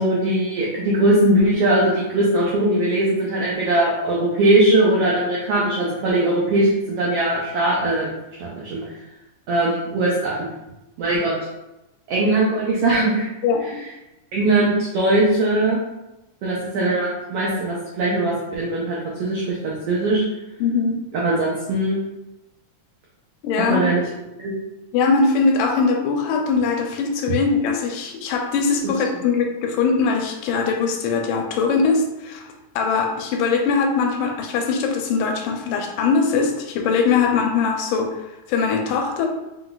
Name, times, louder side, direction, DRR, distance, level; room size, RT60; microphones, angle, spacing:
voice 1, 0.0-8.1 8.4-8.8 9.5-10.5 11.0-11.3 12.1-13.3 14.3-15.8 16.4-20.2 21.1-22.0 23.7-24.0 24.4-24.5, right 1 dB, 85° right, -5 dB, 1.3 m, -20 dB
voice 2, 13.4-13.8 20.6-20.9 23.4-23.9 24.9-39.3, left 5 dB, 85° left, 2 dB, 2.1 m, -21 dB
5.1 x 3.9 x 2.3 m, 0.95 s
omnidirectional pair, 3.7 m